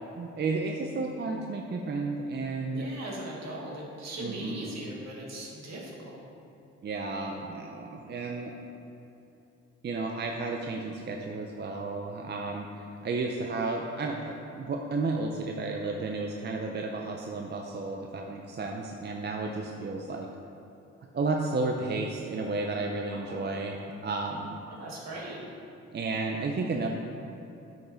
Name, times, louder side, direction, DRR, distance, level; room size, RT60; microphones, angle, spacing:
voice 1, 0.2-2.9 4.2-4.7 6.8-8.5 9.8-12.7 13.0-20.3 21.1-24.6 25.9-26.9, right 3 dB, 35° right, 1 dB, 0.6 m, -32 dB
voice 2, 2.7-6.2 23.1-23.4 24.8-25.4, right 1 dB, 60° right, -3 dB, 2.0 m, -39 dB
9.1 x 5.5 x 4.4 m, 2.8 s
cardioid pair, 90°, 30 cm